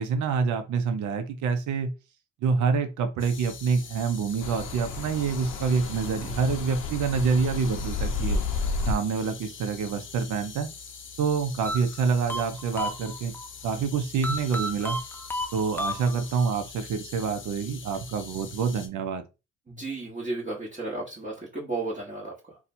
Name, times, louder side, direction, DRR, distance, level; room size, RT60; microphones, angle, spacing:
voice 1, 0.0-1.9 2.4-8.4 8.9-10.7 11.2-13.3 13.6-15.0 15.5-19.2, right 5 dB, 75° right, 0.7 m, -27 dB
sound 1, 3.2-18.9, left 6 dB, 40° left, 0.7 m, -44 dB
sound 2, 4.4-8.9, left 3 dB, 75° left, 0.6 m, -31 dB
sound 3, 11.6-13.5 14.2-16.5, equal, 5° left, 0.4 m, -33 dB
voice 2, 19.7-22.6, right 2 dB, 25° right, 1.2 m, -34 dB
2.7 x 2.3 x 4.2 m
cardioid pair, 90°, 30 cm